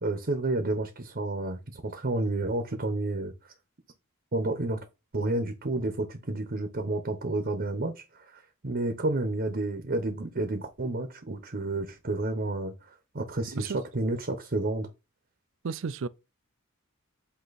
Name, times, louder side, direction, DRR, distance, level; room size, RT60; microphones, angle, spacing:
voice 1, 0.0-3.3 4.3-4.8 5.1-12.7 13.1-14.9, right 2 dB, 45° right, 0.9 m, -30 dB
voice 2, 15.6-16.1, right 5 dB, 65° right, 0.5 m, -33 dB
7.9 x 2.9 x 4.1 m
head